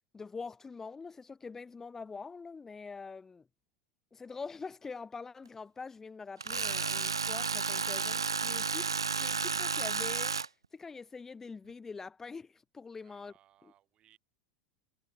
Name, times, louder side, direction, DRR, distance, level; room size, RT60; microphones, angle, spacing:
voice 1, 0.1-3.5 4.1-8.9 9.2-10.4 10.7-13.3 13.6-13.7, left 4 dB, 20° left, 1.0 m, -44 dB
Tools, 6.4-10.5, right 5 dB, 90° right, 0.3 m, -32 dB
voice 2, 13.0-14.2, right 12 dB, 40° right, 7.9 m, -65 dB
hypercardioid pair, 85°, 2 cm